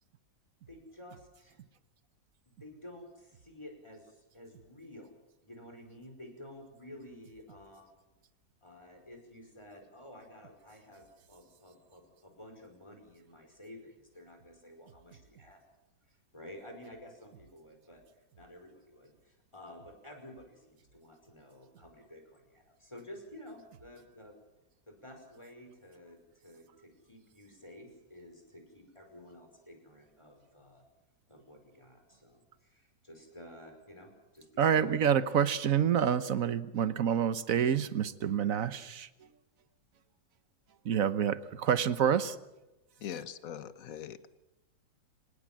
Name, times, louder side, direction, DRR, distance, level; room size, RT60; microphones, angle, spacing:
voice 1, 0.7-1.6 2.5-5.1 5.4-8.1 8.6-15.6 16.1-18.0 18.4-24.4 24.9-30.8 31.3-34.9, left 1 dB, 15° left, 5.3 m, -52 dB
voice 2, 34.6-39.1 40.8-42.4, right 8 dB, 50° right, 1.3 m, -28 dB
voice 3, 43.0-44.4, left 9 dB, 55° left, 1.4 m, -42 dB
25.5 x 20.0 x 7.6 m
omnidirectional pair, 2.0 m